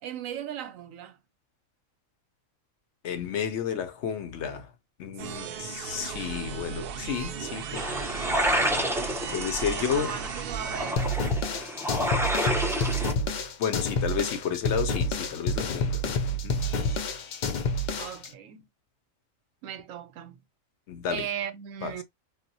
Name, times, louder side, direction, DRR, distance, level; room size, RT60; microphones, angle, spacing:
voice 1, 0.0-1.2 5.4-5.8 9.7-11.4 18.0-18.7 19.6-20.4 21.1-22.0, right 9 dB, 85° right, 1.0 m, -38 dB
voice 2, 3.0-4.7 5.0-7.8 9.3-10.1 13.6-16.1 16.4-16.6 20.9-21.3 21.8-22.0, left 7 dB, 65° left, 0.8 m, -31 dB
sound 1, 5.2-10.9, right 7 dB, 65° right, 0.6 m, -36 dB
sound 2, 7.7-13.1, equal, 5° right, 0.3 m, -29 dB
sound 3, 11.0-18.3, left 1 dB, 90° left, 0.4 m, -29 dB
4.1 x 2.1 x 2.6 m
omnidirectional pair, 1.4 m